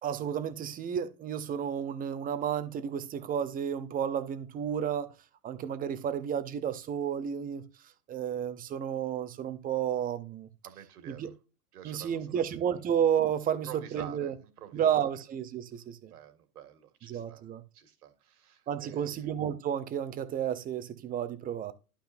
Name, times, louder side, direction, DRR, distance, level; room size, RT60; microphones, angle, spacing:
voice 1, 0.0-5.1 5.4-7.6 8.1-10.5 11.1-11.3 11.8-14.3 14.7-16.1 17.1-17.6 18.7-21.7, right 9 dB, 20° right, 0.7 m, -31 dB
voice 2, 10.6-11.3 11.7-12.4 13.5-15.2 16.1-17.5 17.7-19.3, right 10 dB, 65° right, 2.1 m, -49 dB
11.5 x 5.8 x 2.6 m
hypercardioid pair, 115°, 48 cm